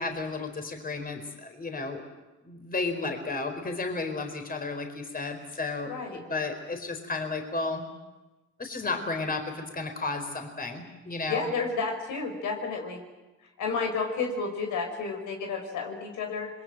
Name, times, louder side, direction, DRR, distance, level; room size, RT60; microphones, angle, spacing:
voice 1, 0.0-2.0 2.4-7.8 8.6-11.5, left 3 dB, 30° left, 5 dB, 4.5 m, -33 dB
voice 2, 5.8-6.2 11.3-13.0 13.6-16.5, left 4 dB, 85° left, 3 dB, 5.4 m, -31 dB
26.0 x 22.5 x 7.7 m, 1.2 s
cardioid pair, 90°, 30 cm